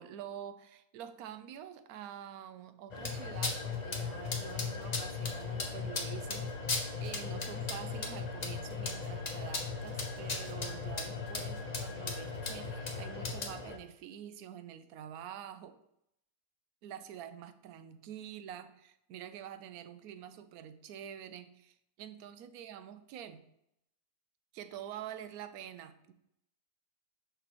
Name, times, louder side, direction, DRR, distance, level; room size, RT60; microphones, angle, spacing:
voice 1, 0.0-15.8 16.8-23.4 24.5-26.1, right 10 dB, 70° right, 11 dB, 1.0 m, -47 dB
sound 1, 2.9-13.8, left 4 dB, 35° left, 0.7 m, -37 dB
6.9 x 5.8 x 3.0 m, 0.78 s
omnidirectional pair, 1.7 m